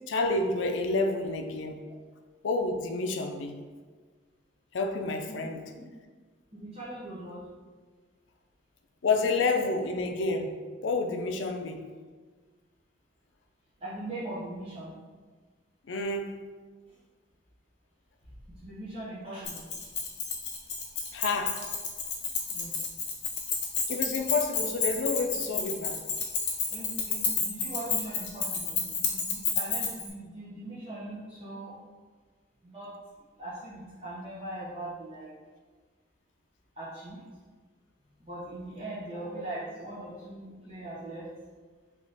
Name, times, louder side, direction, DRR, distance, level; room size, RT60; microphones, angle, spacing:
voice 1, 0.1-1.8 2.4-3.6 4.7-5.6 9.0-10.6 10.8-11.9 15.9-16.3 21.1-21.6 23.9-26.0, left 3 dB, 85° left, 5 dB, 0.4 m, -29 dB
voice 2, 6.5-7.4 13.8-15.0 18.6-19.7 22.5-22.8 26.7-31.8 32.6-32.9 33.4-35.3 36.7-37.2 38.2-41.3, right 1 dB, 30° right, -10 dB, 0.9 m, -40 dB
Keys jangling, 19.4-30.1, left 5 dB, 65° left, 0.8 m, -31 dB
3.5 x 2.9 x 3.9 m, 1.4 s
head